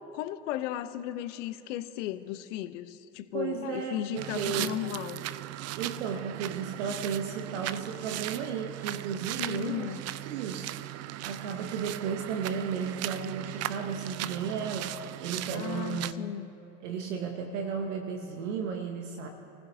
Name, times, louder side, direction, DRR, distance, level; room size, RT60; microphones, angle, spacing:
voice 1, 0.0-5.2 9.4-10.0 15.5-16.5, left 13 dB, 75° left, 12 dB, 0.7 m, -35 dB
voice 2, 3.3-4.8 5.8-10.0 10.2-10.7 11.2-16.1 16.8-19.3, right 6 dB, 80° right, 4 dB, 1.0 m, -34 dB
sound 1, 4.2-16.1, right 14 dB, 45° right, 0.5 m, -38 dB
27.5 x 15.5 x 2.7 m, 2.8 s
hypercardioid pair, 65°, 36 cm